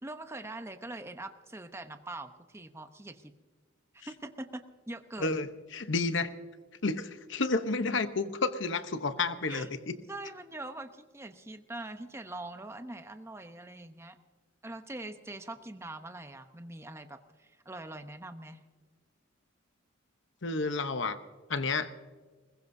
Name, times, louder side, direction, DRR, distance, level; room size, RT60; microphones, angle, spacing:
voice 1, 0.0-3.3 3.9-5.4 9.5-9.7 10.1-14.2 14.6-18.6, right 2 dB, 15° right, 8 dB, 0.9 m, -43 dB
voice 2, 5.7-6.3 6.8-9.9 20.4-21.2 21.5-21.9, left 3 dB, 60° left, 10 dB, 0.9 m, -30 dB
21.0 x 21.0 x 2.7 m, 1.4 s
head